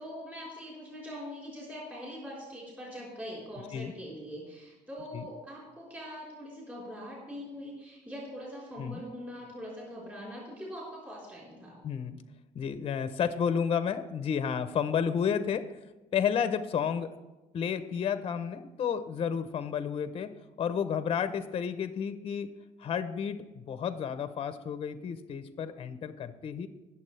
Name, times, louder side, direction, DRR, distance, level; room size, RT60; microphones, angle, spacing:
voice 1, 0.0-11.8, equal, 10° right, -6 dB, 4.1 m, -42 dB
voice 2, 11.8-12.2 12.5-15.8 16.1-17.1 17.5-20.3 20.6-22.5 22.8-26.7, left 7 dB, 40° left, 11 dB, 0.8 m, -31 dB
21.0 x 7.2 x 3.3 m, 1.1 s
cardioid pair, 145°, 14 cm